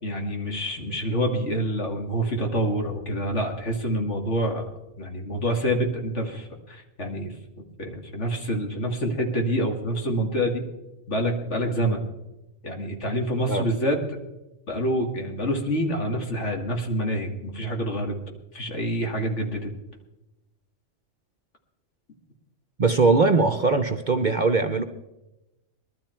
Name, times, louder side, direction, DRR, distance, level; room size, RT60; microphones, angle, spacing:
voice 1, 0.0-4.7 5.0-7.3 7.8-10.6 11.1-12.1 12.6-14.0 14.7-18.2 18.5-19.7, equal, 60° left, 2 dB, 2.4 m, -27 dB
voice 2, 22.8-24.8, right 3 dB, 45° right, 6 dB, 0.8 m, -21 dB
21.0 x 12.5 x 4.5 m, 0.98 s
omnidirectional pair, 1.4 m